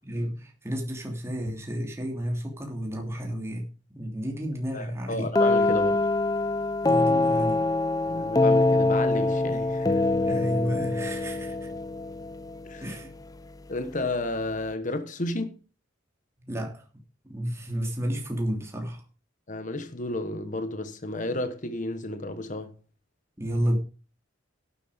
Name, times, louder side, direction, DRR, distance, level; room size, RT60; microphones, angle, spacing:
voice 1, 0.0-3.6 3.9-5.3 6.8-7.6 10.3-11.7 12.8-13.1 16.4-16.8 17.3-19.0 23.4-23.8, equal, 15° right, 3.1 m, -31 dB
voice 2, 4.7-6.1 8.0-10.0 12.6-13.0 13.7-15.6 19.5-22.7, left 2 dB, 40° left, 1.2 m, -32 dB
sound 1, 5.4-13.1, left 2 dB, 20° left, 0.5 m, -24 dB
11.5 x 8.5 x 5.2 m
head